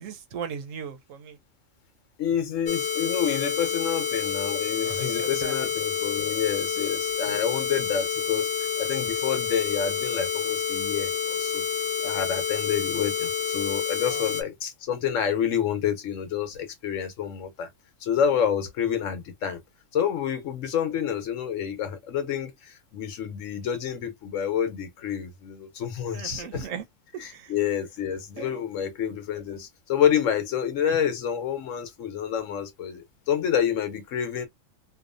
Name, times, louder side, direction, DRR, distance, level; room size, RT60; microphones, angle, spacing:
voice 1, 0.0-1.4 4.8-5.6 7.3-7.4 14.0-14.2 26.1-26.8 27.1-27.5 28.4-28.6, right 7 dB, 80° right, 1.0 m, -37 dB
voice 2, 2.2-11.6 12.0-17.7 18.0-19.6 19.9-26.7 27.2-34.5, left 8 dB, 75° left, 1.1 m, -28 dB
sound 1, 2.7-14.4, left 7 dB, 60° left, 0.7 m, -28 dB
2.6 x 2.3 x 2.4 m
omnidirectional pair, 1.4 m